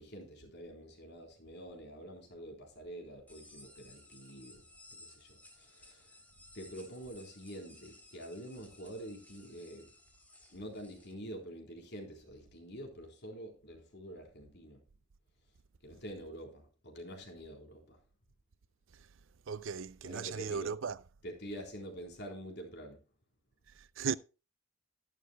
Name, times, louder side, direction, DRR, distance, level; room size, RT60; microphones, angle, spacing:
voice 1, 0.0-4.6 4.9-6.1 6.5-9.9 10.5-14.8 15.8-18.0 20.0-20.7 21.2-23.0, right 1 dB, 60° left, 3.8 m, -47 dB
sound 1, 3.3-11.1, left 1 dB, 10° left, 3.0 m, -58 dB
voice 2, 19.5-21.0 23.7-24.2, right 6 dB, 70° right, 0.5 m, -37 dB
14.0 x 11.0 x 2.3 m
head